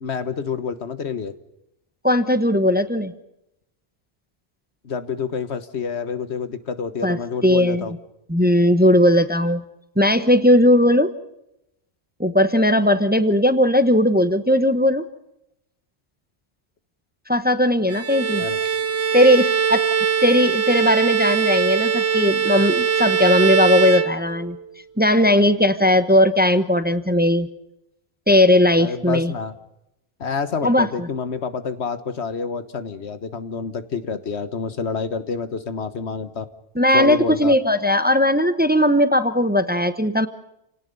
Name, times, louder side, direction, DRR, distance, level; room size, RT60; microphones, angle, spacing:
voice 1, 0.0-1.3 4.8-8.0 18.4-18.6 28.8-29.5 30.2-36.5 36.9-37.5, left 5 dB, 85° left, 11 dB, 1.6 m, -28 dB
voice 2, 2.0-3.1 7.0-7.2 7.4-7.8 8.3-9.6 10.0-11.1 12.2-15.0 17.3-18.4 19.1-19.8 20.2-24.6 25.0-27.5 28.3-29.3 30.6-31.1 36.8-40.3, left 1 dB, 10° right, 11 dB, 1.0 m, -17 dB
Bowed string instrument, 17.9-24.7, right 7 dB, 70° right, 1.3 m, -21 dB
29.5 x 18.0 x 5.4 m, 0.85 s
omnidirectional pair, 1.1 m